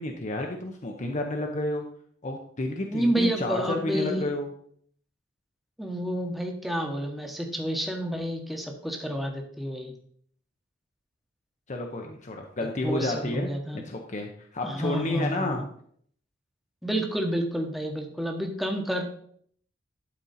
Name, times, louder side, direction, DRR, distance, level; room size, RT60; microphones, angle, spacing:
voice 1, 0.0-1.9 2.2-4.5 11.7-15.6, left 2 dB, 40° left, 2 dB, 0.8 m, -31 dB
voice 2, 2.8-4.2 5.8-9.9 12.8-13.8 14.6-15.6 16.8-19.0, equal, ahead, 2 dB, 1.1 m, -29 dB
11.5 x 4.4 x 4.2 m, 0.62 s
head